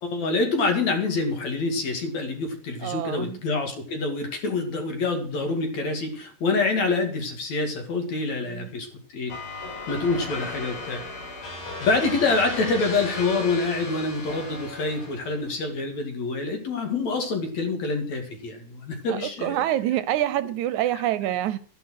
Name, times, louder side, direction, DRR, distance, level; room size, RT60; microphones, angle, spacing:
voice 1, 0.0-9.4 9.9-11.0 11.8-19.6, left 3 dB, 60° left, 3.5 m, -26 dB
voice 2, 2.8-3.4 8.4-8.7 19.1-21.6, right 12 dB, 75° right, 2.0 m, -26 dB
sound 1, 9.3-15.5, left 2 dB, 85° left, 6.2 m, -36 dB
12.5 x 10.5 x 6.3 m
omnidirectional pair, 3.6 m